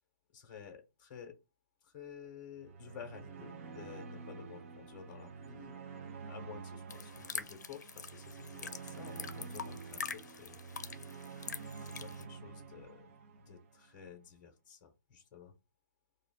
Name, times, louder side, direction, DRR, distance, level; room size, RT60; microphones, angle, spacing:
voice 1, 0.3-1.3 1.8-5.8 6.3-11.1 12.0-13.1 13.4-15.5, left 8 dB, 35° left, 4 dB, 0.9 m, -52 dB
sound 1, 2.6-13.9, right 5 dB, 45° right, 0.6 m, -48 dB
sound 2, 6.9-12.2, left 6 dB, 75° left, 0.5 m, -45 dB
2.9 x 2.3 x 4.1 m, 0.26 s
hypercardioid pair, 145°, 10 cm